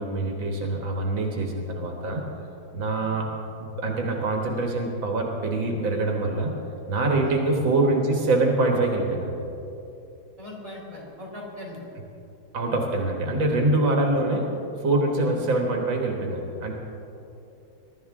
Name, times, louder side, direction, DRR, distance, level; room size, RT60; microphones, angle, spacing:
voice 1, 0.0-2.3 2.7-3.3 3.6-6.5 6.9-9.4 12.5-14.6 14.8-16.7, right 2 dB, 85° right, 1 dB, 2.2 m, -24 dB
voice 2, 10.4-11.8 15.2-15.4, left 1 dB, 20° right, -5 dB, 4.1 m, -40 dB
22.5 x 12.5 x 3.7 m, 2.9 s
omnidirectional pair, 2.0 m